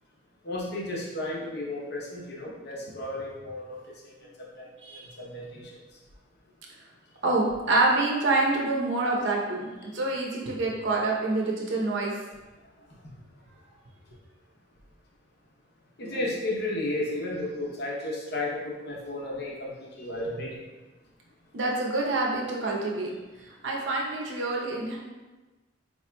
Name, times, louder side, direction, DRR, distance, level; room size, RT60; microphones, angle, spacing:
voice 1, 0.4-3.8 4.6-4.7 5.2-5.7 16.0-20.6, left 1 dB, 55° left, -3 dB, 0.8 m, -33 dB
voice 2, 7.2-12.1 16.0-16.2 21.5-23.1 23.6-25.0, right 2 dB, 65° right, -2 dB, 0.7 m, -26 dB
4.5 x 2.9 x 2.2 m, 1.2 s
head